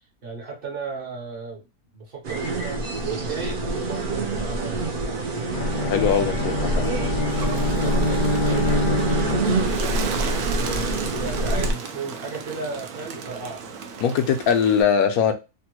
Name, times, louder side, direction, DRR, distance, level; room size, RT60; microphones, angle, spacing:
voice 1, 0.2-1.6 1.9-5.3 6.8-10.0 10.5-13.6, right 4 dB, 45° right, 0.9 m, -35 dB
sound 1, 2.2-11.7, right 2 dB, 65° right, 0.5 m, -25 dB
Bowed string instrument, 5.5-9.9, left 3 dB, 60° left, 0.7 m, -27 dB
voice 2, 5.8-6.8 14.0-15.3, left 7 dB, 80° left, 1.1 m, -21 dB
Bird, 7.2-14.8, right 5 dB, 80° right, 1.1 m, -35 dB
3.4 x 2.2 x 2.9 m
omnidirectional pair, 1.6 m